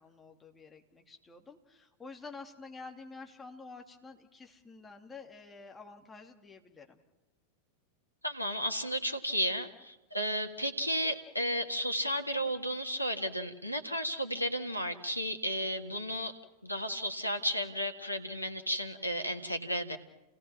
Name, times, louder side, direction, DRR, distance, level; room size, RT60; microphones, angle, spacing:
voice 1, 0.0-7.0, left 4 dB, 15° left, 3 dB, 2.6 m, -49 dB
voice 2, 8.2-16.3 16.6-20.0, equal, 90° left, 5 dB, 1.7 m, -33 dB
29.5 x 18.5 x 6.0 m, 1.0 s
figure-of-eight pair, 90°, 0 cm